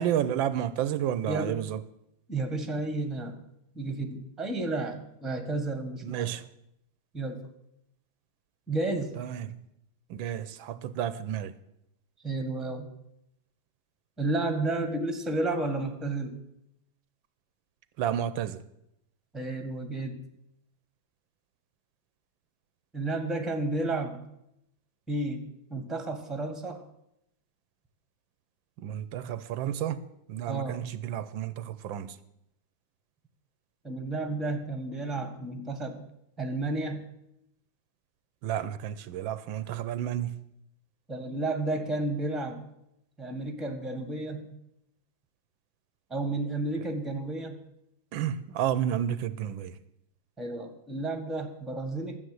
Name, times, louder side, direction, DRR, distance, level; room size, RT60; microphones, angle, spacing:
voice 1, 0.0-1.8 6.0-6.4 9.2-9.6 10.1-11.5 18.0-18.6 28.8-30.0 30.3-32.2 38.4-40.4 48.1-49.8, right 10 dB, 85° right, 1.5 m, -31 dB
voice 2, 1.3-1.6 2.3-3.4 3.7-6.3 7.1-7.5 8.7-9.2 12.2-12.9 14.2-16.4 19.3-20.2 22.9-24.2 25.1-26.8 30.5-30.8 33.8-36.0 36.4-37.1 41.1-42.6 43.2-44.5 46.1-47.6 50.4-52.2, right 2 dB, ahead, 1.3 m, -32 dB
12.5 x 8.1 x 7.8 m
omnidirectional pair, 2.1 m